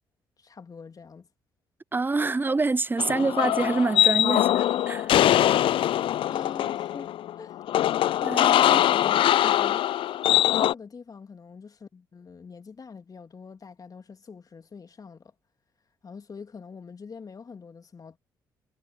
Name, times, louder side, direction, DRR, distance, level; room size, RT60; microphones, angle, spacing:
voice 1, 0.4-1.3 6.2-7.6 8.6-10.0 10.5-15.3 16.0-18.2, left 5 dB, 35° left, 2.9 m, -43 dB
voice 2, 1.9-5.1 8.2-8.8, right 3 dB, 20° right, 0.9 m, -26 dB
sound 1, 3.0-10.7, left 12 dB, 55° left, 0.9 m, -22 dB
figure-of-eight pair, 45°, 11 cm